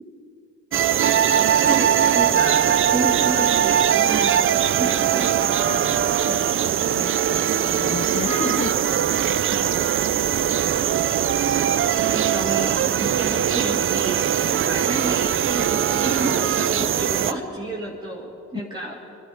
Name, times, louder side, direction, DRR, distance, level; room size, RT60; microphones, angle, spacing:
sound 1, 0.7-17.3, right 9 dB, 45° right, 0.5 m, -21 dB
voice 1, 1.7-5.3 9.5-9.6 11.5-19.2, right 2 dB, 15° right, -4 dB, 2.0 m, -31 dB
voice 2, 6.9-9.1, left 5 dB, 25° left, 15 dB, 0.4 m, -33 dB
24.5 x 12.0 x 4.9 m, 2.9 s
cardioid pair, 90°, 30 cm